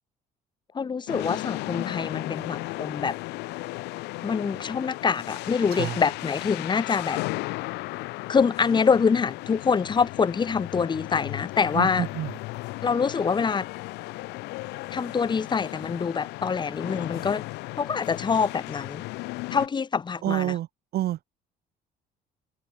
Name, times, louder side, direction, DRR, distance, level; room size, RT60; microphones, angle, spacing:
voice 1, 0.7-3.2 4.2-7.2 8.3-12.0 12.8-13.7 14.9-17.4 17.8-19.0 19.5-20.5, left 5 dB, 25° left, 0.9 m, -25 dB
sound 1, 1.1-19.7, left 21 dB, 85° left, 0.4 m, -35 dB
voice 2, 5.7-6.0 11.7-12.3 20.2-20.7 20.9-21.2, right 14 dB, 70° right, 2.4 m, -28 dB
cardioid pair, 110°, 17 cm